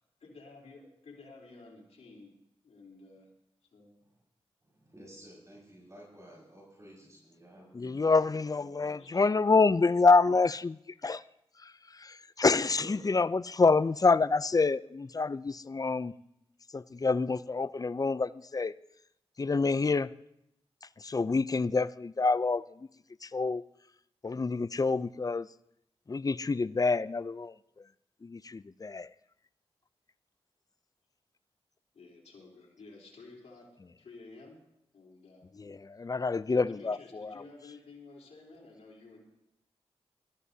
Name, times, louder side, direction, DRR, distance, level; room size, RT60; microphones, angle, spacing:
voice 1, 0.2-2.4 2.6-3.3 3.7-3.9 8.5-9.3 31.9-33.7 34.0-34.6 34.9-35.5 36.5-39.4, left 3 dB, 85° left, 3.6 m, -52 dB
voice 2, 4.7-8.1 12.5-13.0, equal, 30° right, 5.8 m, -51 dB
voice 3, 7.7-11.2 11.6-16.1 16.7-18.7 19.4-20.1 21.0-22.9 23.2-23.6 24.2-25.5 26.1-27.5 28.2-29.1 35.6-37.3, left 4 dB, 35° left, 0.5 m, -27 dB
22.0 x 13.5 x 2.8 m
cardioid pair, 55°, 11 cm